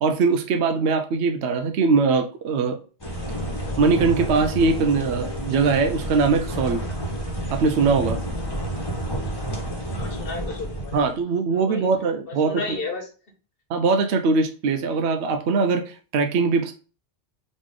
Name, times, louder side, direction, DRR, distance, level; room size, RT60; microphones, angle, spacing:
voice 1, 0.0-2.8 3.8-6.8 7.5-8.2 10.9-12.5 13.7-16.7, right 4 dB, 80° right, 5 dB, 0.9 m, -21 dB
sound 1, 3.0-11.2, right 1 dB, 20° left, 1.1 m, -30 dB
voice 2, 9.9-11.2 11.5-11.9 12.4-13.1, left 3 dB, 55° left, 2 dB, 1.4 m, -33 dB
4.1 x 3.1 x 3.6 m, 0.36 s
omnidirectional pair, 1.1 m